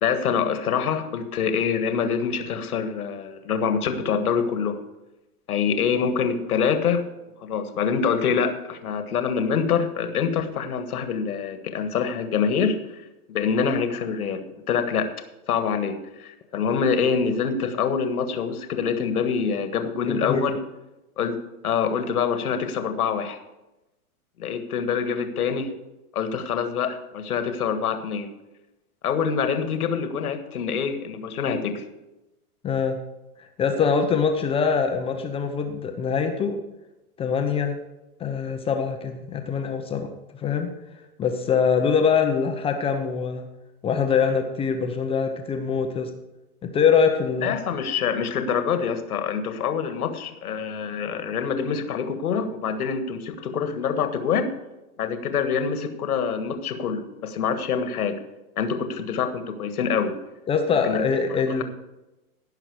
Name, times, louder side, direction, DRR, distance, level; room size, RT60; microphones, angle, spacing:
voice 1, 0.0-4.8 5.5-7.0 7.4-12.8 13.3-15.1 15.5-20.6 21.2-21.4 21.6-23.4 24.4-25.7 26.1-28.3 29.0-31.8 47.4-54.5 55.0-58.2 58.6-60.2 60.8-61.6, left 6 dB, 70° left, 8 dB, 1.7 m, -25 dB
voice 2, 20.1-20.4 32.6-33.0 33.4-36.6 37.2-37.8 38.2-40.7 41.2-43.5 43.8-46.1 46.6-47.6 60.5-61.6, left 6 dB, 15° left, 5 dB, 0.7 m, -23 dB
16.5 x 5.9 x 4.8 m, 0.97 s
hypercardioid pair, 125°, 45 cm